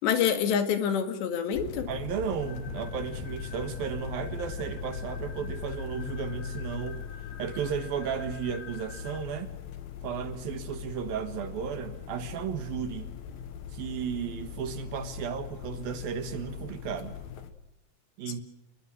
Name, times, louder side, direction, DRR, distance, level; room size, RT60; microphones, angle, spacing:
voice 1, 0.0-1.9, left 8 dB, 85° left, 4.3 m, -26 dB
sound 1, 1.5-17.5, left 7 dB, 65° left, 3.1 m, -40 dB
voice 2, 1.9-7.0 7.4-9.6 10.0-13.1 13.7-17.2 18.2-18.4, right 7 dB, 65° right, 3.1 m, -34 dB
sound 2, 2.4-9.2, left 6 dB, 40° left, 4.7 m, -49 dB
28.0 x 21.5 x 6.4 m
omnidirectional pair, 4.9 m